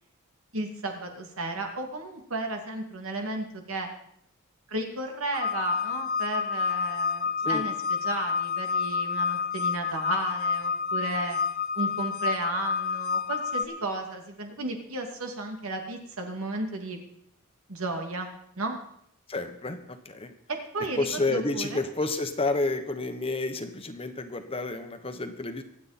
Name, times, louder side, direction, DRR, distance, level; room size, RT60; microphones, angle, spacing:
voice 1, 0.5-3.9 4.7-11.4 11.7-17.0 17.7-18.8 20.5-21.8, right 2 dB, 85° right, 3 dB, 2.5 m, -34 dB
sound 1, 5.3-13.6, left 5 dB, 45° left, 0.7 m, -29 dB
voice 2, 19.3-19.8 20.0-20.3 21.0-25.6, left 2 dB, 25° left, 8 dB, 1.1 m, -30 dB
24.5 x 8.7 x 4.3 m, 0.70 s
head